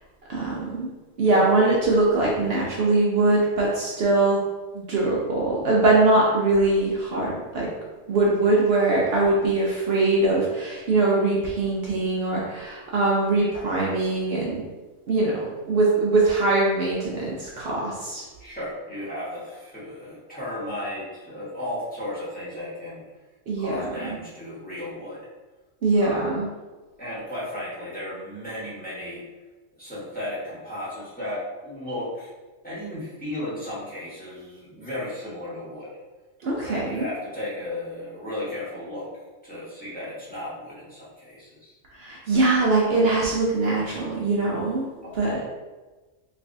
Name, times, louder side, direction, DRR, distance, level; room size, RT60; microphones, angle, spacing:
voice 1, 0.3-0.9 1.2-4.4 4.7-7.7 8.1-14.6 15.1-18.2 23.5-24.2 25.8-26.5 36.4-37.1 41.9-44.9 45.1-45.4, right 2 dB, 60° right, -4 dB, 0.8 m, -22 dB
voice 2, 1.3-1.7 18.4-23.0 23.6-25.2 26.0-26.3 27.0-29.2 29.8-32.3 32.6-35.9 36.6-39.1 39.4-41.7 45.0-45.4, left 1 dB, 10° left, -9 dB, 1.1 m, -34 dB
3.2 x 3.2 x 2.6 m, 1.2 s
omnidirectional pair, 1.2 m